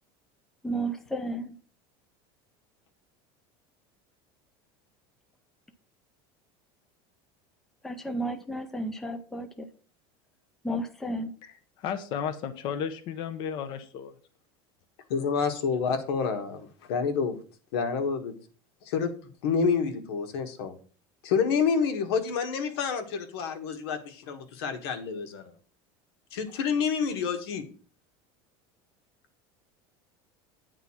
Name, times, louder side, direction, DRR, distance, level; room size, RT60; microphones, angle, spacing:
voice 1, 0.6-1.6 7.8-9.7 10.6-11.3, right 1 dB, 5° left, 7 dB, 0.5 m, -32 dB
voice 2, 11.4-14.1, left 7 dB, 40° left, 9 dB, 0.7 m, -34 dB
voice 3, 15.1-17.4 17.7-18.3 18.8-19.1 19.4-20.8 21.2-25.5 26.3-27.6, left 6 dB, 85° left, 6 dB, 1.6 m, -28 dB
9.3 x 3.8 x 7.1 m, 0.41 s
cardioid pair, 175°, 13 cm